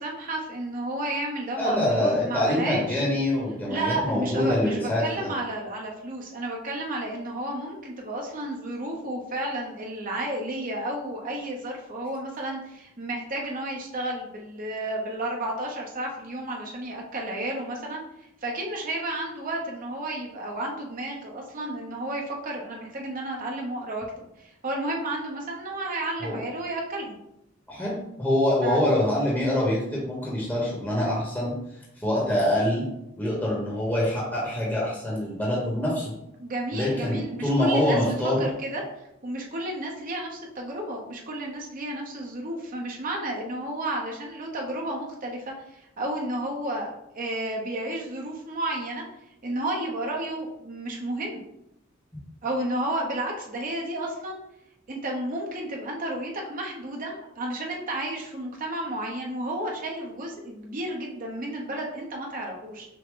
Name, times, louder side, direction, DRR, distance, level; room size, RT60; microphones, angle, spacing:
voice 1, 0.0-3.0 3.7-18.0 18.4-27.2 28.6-28.8 36.4-38.0 38.4-38.8 39.2-49.0 49.4-51.4 52.4-54.4 54.9-62.9, right 1 dB, 45° right, -1 dB, 1.0 m, -32 dB
voice 2, 1.6-5.3 26.2-26.4 27.7-27.9 28.2-31.5 32.0-32.9 33.2-36.1 36.7-38.5 52.1-52.2, left 1 dB, 10° left, -5 dB, 1.1 m, -25 dB
6.1 x 2.2 x 3.8 m, 0.82 s
head